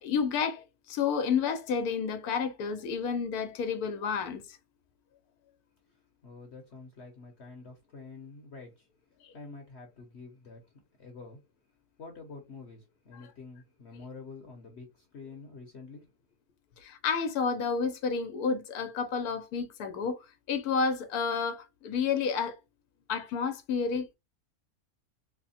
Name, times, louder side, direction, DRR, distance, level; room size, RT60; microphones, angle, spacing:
voice 1, 0.0-4.6 16.8-20.2 20.5-22.6 23.1-24.1, left 6 dB, 80° left, 1.2 m, -30 dB
voice 2, 6.2-8.9 9.3-10.6 11.0-11.4 12.0-16.1, left 4 dB, 50° left, 1.0 m, -47 dB
3.4 x 2.2 x 4.1 m
omnidirectional pair, 1.6 m